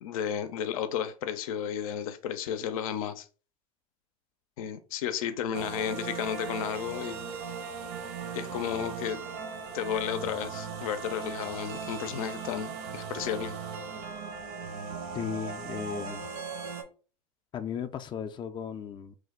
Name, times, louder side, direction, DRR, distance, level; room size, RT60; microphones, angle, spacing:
voice 1, 0.0-3.3 4.6-7.2 8.3-9.2 9.7-13.5, left 9 dB, 85° left, 0.5 m, -33 dB
sound 1, 5.5-16.8, right 5 dB, 60° right, 0.7 m, -38 dB
voice 2, 15.1-16.3 17.5-19.2, left 7 dB, 25° left, 0.3 m, -36 dB
3.1 x 2.2 x 3.5 m
supercardioid pair, 105°, 17 cm